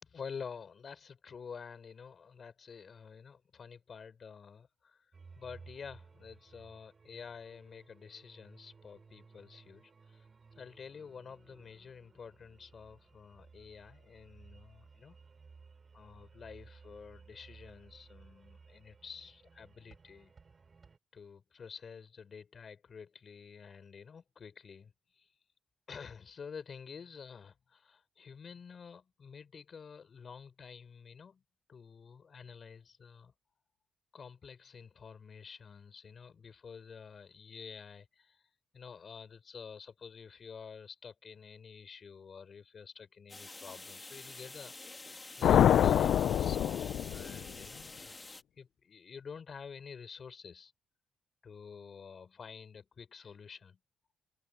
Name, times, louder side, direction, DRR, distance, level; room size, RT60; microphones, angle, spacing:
voice 1, 0.0-5.1 5.4-10.3 10.6-15.2 15.9-20.3 21.1-25.3 25.9-31.4 31.7-33.3 34.1-44.7 45.4-48.2 48.6-50.7 51.4-53.8, left 6 dB, 45° left, 4.0 m, -49 dB
sound 1, 5.1-21.0, right 4 dB, 35° right, 6.8 m, -58 dB
sound 2, 43.3-48.4, left 2 dB, 20° left, 2.0 m, -48 dB
sound 3, 45.4-47.7, left 10 dB, 70° left, 0.6 m, -26 dB
cardioid pair, 90°, 0 cm